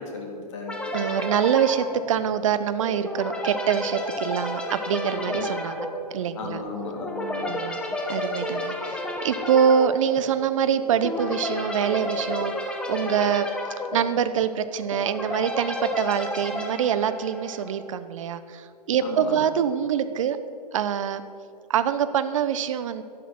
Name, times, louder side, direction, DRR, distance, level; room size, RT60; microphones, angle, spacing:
voice 1, 0.0-0.8 5.2-5.5 6.3-7.5 8.5-8.6 19.0-19.5, left 4 dB, 45° left, 0 dB, 2.3 m, -35 dB
sound 1, 0.7-17.9, left 1 dB, 5° left, 1.1 m, -31 dB
voice 2, 0.9-6.6 7.4-7.8 8.1-13.5 13.9-20.4 20.7-21.2 21.7-23.0, right 8 dB, 50° right, 12 dB, 0.9 m, -25 dB
12.0 x 11.0 x 6.0 m, 2.6 s
figure-of-eight pair, 125°, 21 cm